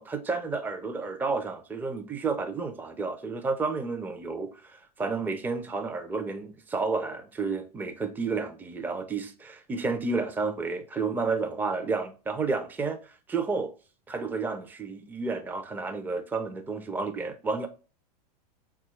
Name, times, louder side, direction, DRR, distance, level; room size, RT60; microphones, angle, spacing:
voice 1, 0.0-13.7 14.1-17.7, right 4 dB, 10° right, 0.4 m, -31 dB
4.1 x 2.3 x 2.9 m
hypercardioid pair, 100°, 21 cm